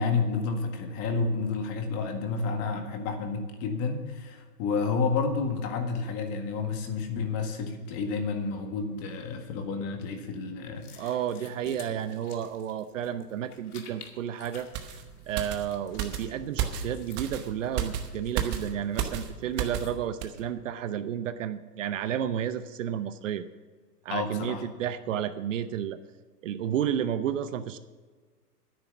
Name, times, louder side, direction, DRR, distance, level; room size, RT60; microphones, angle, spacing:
voice 1, 0.0-11.1 24.1-24.6, left 4 dB, 30° left, 5 dB, 1.7 m, -30 dB
sound 1, 10.7-20.1, left 7 dB, 65° left, 2.4 m, -53 dB
voice 2, 11.0-14.7 15.3-23.4 24.0-26.0 26.4-27.8, right 9 dB, 50° right, 12 dB, 0.8 m, -31 dB
sound 2, 14.7-19.9 20.2-20.4, right 9 dB, 20° right, 0.9 m, -33 dB
10.0 x 9.7 x 7.0 m, 1.5 s
hypercardioid pair, 135°, 48 cm